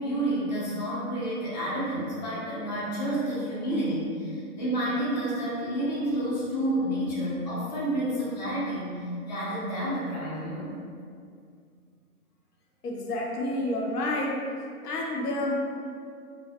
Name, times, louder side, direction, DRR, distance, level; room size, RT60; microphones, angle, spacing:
voice 1, 0.0-10.7, right 1 dB, 30° left, -9 dB, 0.5 m, -30 dB
voice 2, 12.8-14.5 14.8-15.5, left 1 dB, 90° left, -1 dB, 0.6 m, -29 dB
2.5 x 2.1 x 2.6 m, 2.3 s
hypercardioid pair, 155°, 45 cm